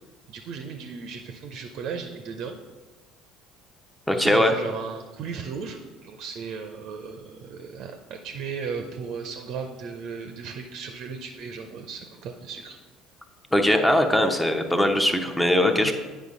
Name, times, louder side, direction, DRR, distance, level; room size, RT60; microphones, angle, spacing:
voice 1, 0.3-2.5 4.1-12.8 15.8-15.9, right 5 dB, 50° right, 5 dB, 0.6 m, -36 dB
voice 2, 4.1-4.5 13.5-15.9, left 1 dB, 10° left, 5 dB, 0.8 m, -20 dB
9.4 x 5.0 x 3.8 m, 1.3 s
figure-of-eight pair, 60°, 0 cm